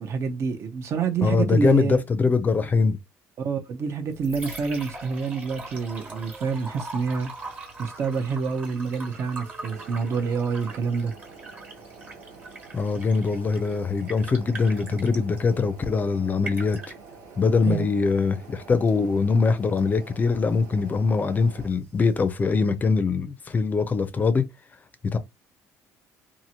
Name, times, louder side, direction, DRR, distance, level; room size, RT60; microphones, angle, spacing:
voice 1, 0.0-2.0 3.4-7.3 7.8-11.1 17.6-17.9, right 5 dB, 50° right, 0.6 m, -27 dB
voice 2, 1.2-3.0 12.7-16.8 17.4-24.4 25.1-25.2, left 4 dB, 30° left, 0.4 m, -22 dB
Liquid, 3.9-22.9, right 3 dB, 30° right, 1.3 m, -43 dB
sound 1, 9.7-21.7, right 4 dB, 70° right, 1.3 m, -47 dB
2.8 x 2.5 x 2.7 m
cardioid pair, 105°, 6 cm